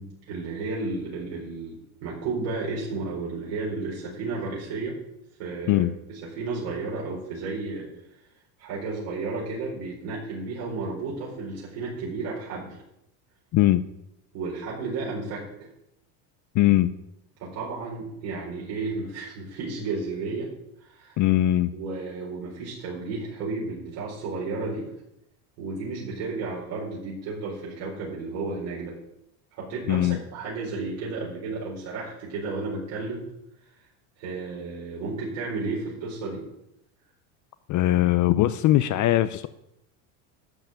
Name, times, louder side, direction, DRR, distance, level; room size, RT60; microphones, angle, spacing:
voice 1, 0.0-5.0 5.4-7.9 8.6-12.8 14.3-15.7 17.4-20.5 20.8-21.2 21.7-24.9 25.6-29.0 29.6-33.2 33.7-33.8 34.2-36.4, right 3 dB, 65° right, 4.7 m, -33 dB
voice 2, 16.5-16.9 21.2-21.7 29.9-30.2 37.7-39.5, left 14 dB, 40° left, 0.5 m, -20 dB
12.5 x 5.7 x 8.9 m
supercardioid pair, 120°, 49 cm